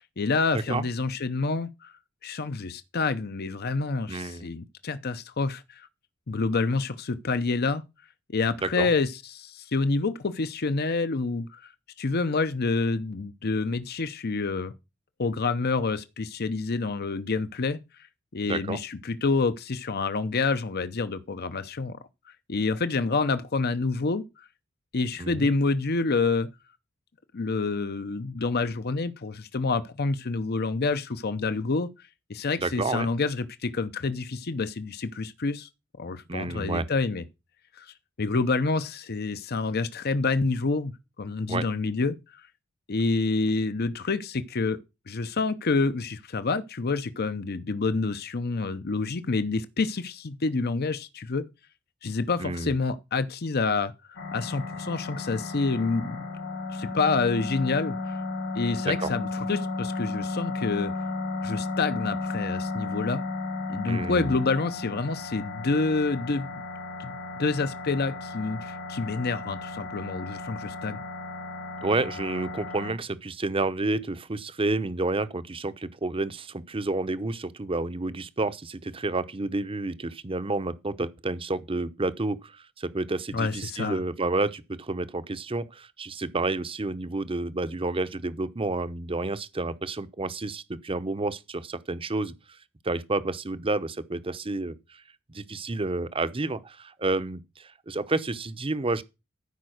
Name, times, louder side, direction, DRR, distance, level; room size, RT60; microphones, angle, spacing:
voice 1, 0.0-1.9 2.2-5.9 6.3-7.8 8.3-11.7 12.0-14.7 15.2-17.8 18.3-22.0 22.5-24.5 24.9-26.5 27.3-31.9 32.3-35.7 36.0-37.2 37.8-40.9 41.2-42.4 42.9-44.8 45.1-51.4 52.0-56.2 56.7-58.0 58.6-60.9 61.4-63.2 63.7-66.6 67.0-71.0 83.3-84.0, left 3 dB, 50° left, 0.7 m, -28 dB
voice 2, 4.1-4.5 8.6-8.9 18.5-18.8 25.2-25.5 32.6-33.1 36.3-36.8 41.5-41.6 52.4-52.7 58.9-59.1 63.9-64.3 71.8-92.3 92.8-94.8 95.3-99.0, right 2 dB, 25° right, 0.7 m, -30 dB
sound 1, 54.2-72.9, left 3 dB, 85° left, 3.6 m, -34 dB
13.5 x 5.2 x 6.4 m
head